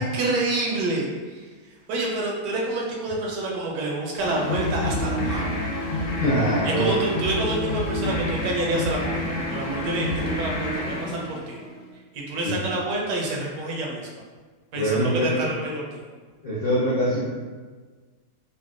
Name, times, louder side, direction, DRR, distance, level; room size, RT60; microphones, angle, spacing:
voice 1, 0.0-5.5 6.6-11.6 12.1-14.1 14.7-16.0, right 2 dB, 80° right, -2 dB, 1.3 m, -28 dB
sound 1, 4.2-11.9, left 1 dB, 85° left, 1.3 m, -28 dB
voice 2, 6.2-6.9 12.4-12.6 14.7-15.4 16.4-17.2, equal, 55° left, -11 dB, 0.4 m, -23 dB
3.8 x 2.2 x 2.3 m, 1.4 s
omnidirectional pair, 1.8 m